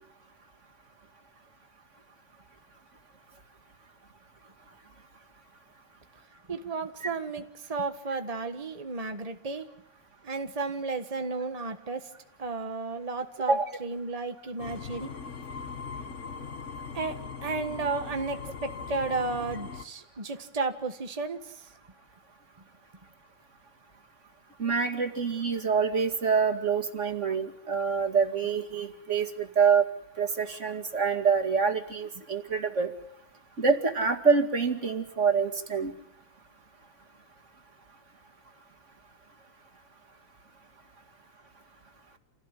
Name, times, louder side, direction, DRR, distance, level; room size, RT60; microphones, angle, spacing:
voice 1, 6.5-9.7 10.2-12.0 12.4-15.1 16.9-17.2 17.4-21.7, right 3 dB, 65° right, 6 dB, 0.3 m, -33 dB
sound 1, 14.6-19.8, left 5 dB, 45° left, 1.0 m, -40 dB
voice 2, 24.6-29.8 30.2-32.9 33.6-35.9, right 5 dB, 25° right, 5 dB, 2.2 m, -26 dB
28.5 x 17.0 x 10.0 m, 0.76 s
omnidirectional pair, 3.3 m